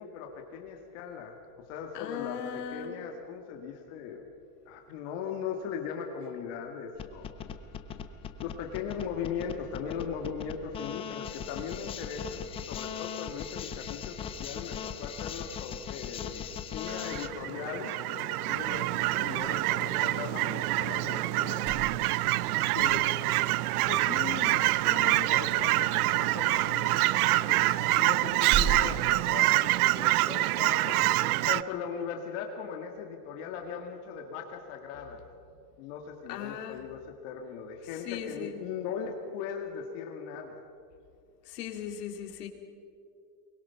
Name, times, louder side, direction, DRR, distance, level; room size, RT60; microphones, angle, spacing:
voice 1, 0.0-4.3 4.7-7.3 8.4-21.7 22.7-23.1 23.8-27.0 27.3-35.2 35.8-40.6, left 6 dB, 50° left, 2 dB, 2.0 m, -39 dB
voice 2, 1.9-2.9 35.1-35.2 36.3-36.8 37.8-38.6 41.4-42.5, left 9 dB, 75° left, 4 dB, 2.8 m, -38 dB
sound 1, 7.0-17.3, left 8 dB, 10° left, 0.4 m, -39 dB
Fowl / Chirp tweet, 16.9-31.6, right 18 dB, 65° right, 0.6 m, -26 dB
sound 2, 18.4-29.5, right 7 dB, 40° right, 2.0 m, -41 dB
23.5 x 21.0 x 5.8 m, 2.5 s
supercardioid pair, 155°, 49 cm